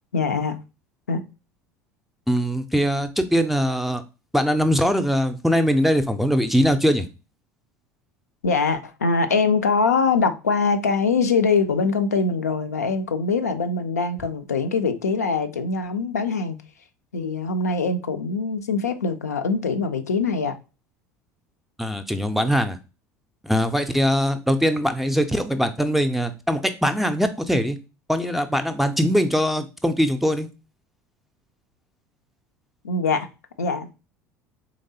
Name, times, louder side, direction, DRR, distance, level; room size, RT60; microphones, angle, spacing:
voice 1, 0.1-0.6 1.1-1.2 8.4-16.6 17.1-20.6 32.8-33.3 33.6-33.9, left 4 dB, 75° left, 0.4 m, -23 dB
voice 2, 2.3-4.0 4.3-7.1 21.8-22.8 23.4-27.8 28.1-30.5, equal, ahead, 0.4 m, -21 dB
3.9 x 3.2 x 2.6 m
figure-of-eight pair, 70°, 9 cm